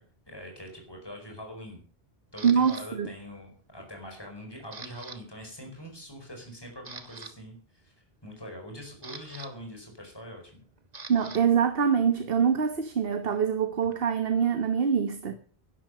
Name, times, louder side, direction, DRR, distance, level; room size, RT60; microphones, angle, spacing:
voice 1, 0.3-1.8 2.3-7.9 8.2-10.6, equal, 20° left, 5.0 m, -43 dB
Camera, 2.4-2.8 3.4-3.8 4.1-5.2 5.4-5.7 6.2-6.3 6.7-7.3 8.5-11.4 11.7-14.3, right 4 dB, 40° right, 1.5 m, -46 dB
voice 2, 2.4-3.1 11.1-15.3, right 7 dB, 60° right, 1.3 m, -24 dB
12.5 x 11.5 x 6.6 m
omnidirectional pair, 1.1 m